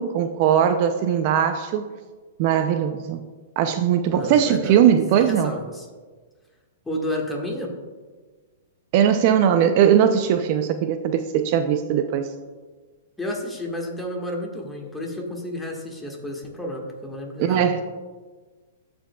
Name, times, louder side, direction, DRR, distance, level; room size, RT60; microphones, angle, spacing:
voice 1, 0.0-1.9 2.4-3.3 3.6-5.5 8.9-12.3 17.4-17.8, right 9 dB, 45° right, 8 dB, 0.4 m, -20 dB
voice 2, 4.1-4.8 5.1-5.9 6.8-7.7 13.2-17.6, left 1 dB, 10° left, -1 dB, 1.5 m, -31 dB
14.5 x 5.1 x 2.3 m, 1.4 s
hypercardioid pair, 130°, 0 cm